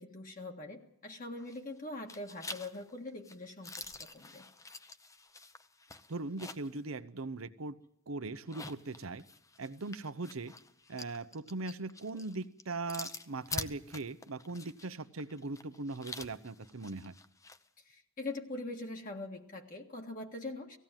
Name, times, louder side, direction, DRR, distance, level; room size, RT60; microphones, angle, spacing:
voice 1, 0.0-4.5 17.9-20.8, left 2 dB, 40° left, 2 dB, 1.8 m, -43 dB
sound 1, 1.4-1.8 2.1-6.8 7.2-7.3 8.3-17.6, left 3 dB, 15° left, 0.8 m, -46 dB
voice 2, 6.1-7.8 8.1-9.2 9.6-10.5 10.9-17.1, right 3 dB, 90° right, 12 dB, 0.9 m, -40 dB
18.5 x 16.0 x 9.0 m, 0.73 s
head